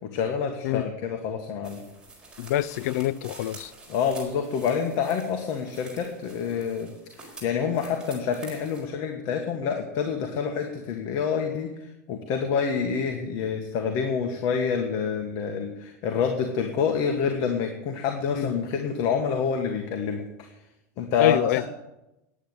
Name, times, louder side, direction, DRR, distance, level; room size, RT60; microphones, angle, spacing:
voice 1, 0.0-1.8 3.9-6.9 7.2-11.7 12.1-20.2 21.0-21.7, left 6 dB, 50° left, 1.5 m, -27 dB
sound 1, 1.6-8.8, right 2 dB, 10° right, 4.5 m, -47 dB
voice 2, 2.4-3.7 18.3-18.5 21.2-21.6, left 14 dB, 75° left, 0.4 m, -26 dB
10.0 x 8.6 x 8.2 m
supercardioid pair, 130°, 9 cm